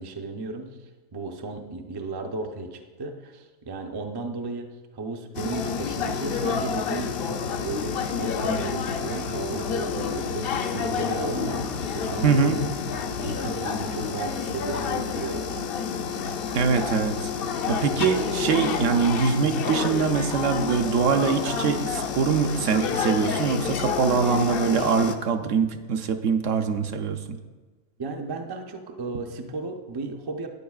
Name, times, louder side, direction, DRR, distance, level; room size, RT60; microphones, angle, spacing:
voice 1, 0.0-4.7 4.9-11.7 11.9-12.6 13.2-15.7 17.9-18.2 28.0-30.5, right 3 dB, 35° right, 4 dB, 0.3 m, -34 dB
sound 1, 5.3-25.2, left 6 dB, 60° left, 0.7 m, -29 dB
voice 2, 12.2-12.6 16.5-17.3 17.7-27.4, right 6 dB, 70° right, 7 dB, 1.0 m, -23 dB
12.0 x 9.3 x 2.4 m, 1.3 s
omnidirectional pair, 1.4 m